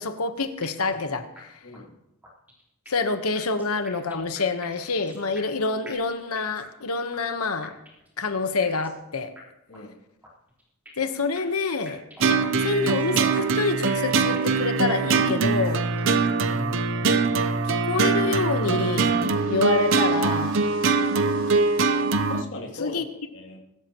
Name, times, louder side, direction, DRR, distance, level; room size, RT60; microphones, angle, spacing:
voice 1, 0.0-1.5 2.9-7.8 8.2-9.3 11.0-12.0 12.3-15.9 17.6-19.1 19.5-20.6 22.8-23.1, left 3 dB, 85° left, 8 dB, 1.1 m, -27 dB
sound 1, 0.6-1.0 1.4-1.5 1.7-1.8 2.2-3.1 3.4-5.6 5.9-6.8 7.1-7.2 7.6-8.1 8.6-9.0 9.4-9.5 9.7-9.8 10.2-11.1 11.4-13.6 13.9-14.8 15.1-15.2 15.6-16.1, equal, 10° right, 4.2 m, -47 dB
voice 2, 1.6-2.0 9.7-10.0 16.5-17.1 22.3-23.0 23.3-23.6, left 2 dB, 60° left, 0 dB, 2.8 m, -38 dB
sound 2, 12.2-22.4, right 4 dB, 60° right, 0.7 m, -23 dB
sound 3, 12.9-22.3, right 3 dB, 80° right, 5.5 m, -47 dB
23.5 x 13.0 x 3.0 m, 0.86 s
head